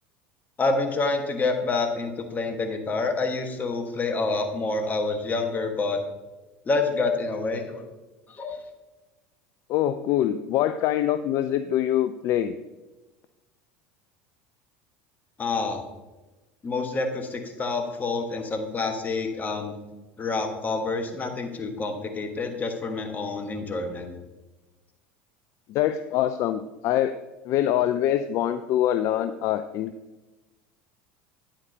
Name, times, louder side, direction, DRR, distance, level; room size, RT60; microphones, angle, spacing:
voice 1, 0.6-6.0 6.6-7.8 8.3-8.6 15.4-15.8 16.6-19.8 20.2-24.1, left 3 dB, 30° left, 5 dB, 1.4 m, -27 dB
voice 2, 9.7-12.6 25.7-27.2 27.5-29.9, left 11 dB, 50° left, 11 dB, 0.4 m, -24 dB
9.6 x 8.7 x 2.8 m, 1.1 s
hypercardioid pair, 75°, 6 cm